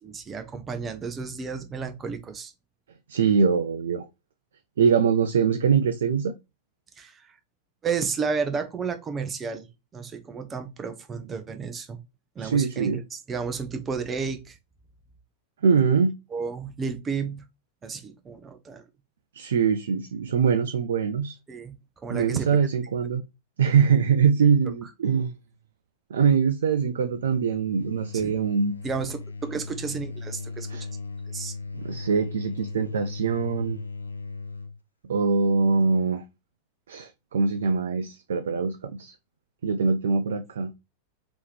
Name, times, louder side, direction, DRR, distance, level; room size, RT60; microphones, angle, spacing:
voice 1, 0.0-2.5 7.0-7.4 7.8-9.7 9.9-12.0 12.4-13.0 13.3-14.6 16.3-17.4 17.8-18.8 21.5-21.7 22.0-22.5 28.1-28.3 28.8-30.7 31.3-31.5, right 5 dB, 20° right, 0.7 m, -32 dB
voice 2, 3.1-4.1 4.8-6.3 12.4-13.0 15.6-16.1 19.3-21.4 22.1-23.2 23.6-25.3 26.1-28.7 30.7-30.8 31.7-33.8 35.1-36.2 36.9-39.1 39.6-40.7, right 6 dB, 65° right, 0.3 m, -23 dB
sound 1, 27.0-34.8, left 3 dB, 80° left, 0.3 m, -37 dB
3.5 x 2.9 x 3.3 m
figure-of-eight pair, 90°, 0 cm